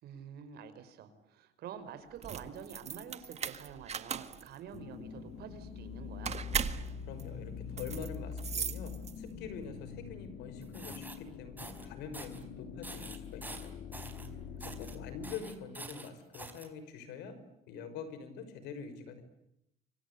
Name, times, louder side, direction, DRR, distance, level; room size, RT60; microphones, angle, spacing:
voice 1, 0.0-6.4 14.2-15.0, right 8 dB, 70° right, 10 dB, 5.1 m, -48 dB
sound 1, 2.1-9.5, right 7 dB, 40° right, 1.8 m, -39 dB
sound 2, 4.7-15.4, left 7 dB, 70° left, 3.3 m, -44 dB
voice 2, 6.8-14.0 14.6-17.4 17.7-19.2, left 6 dB, 90° left, 11 dB, 5.8 m, -45 dB
sound 3, 10.6-11.2 11.6-11.9 12.1-12.4 12.8-14.3 14.6-15.0 15.2-16.7, right 2 dB, 10° right, 4.8 m, -46 dB
29.0 x 24.5 x 8.3 m, 0.81 s
cardioid pair, 110°, 17 cm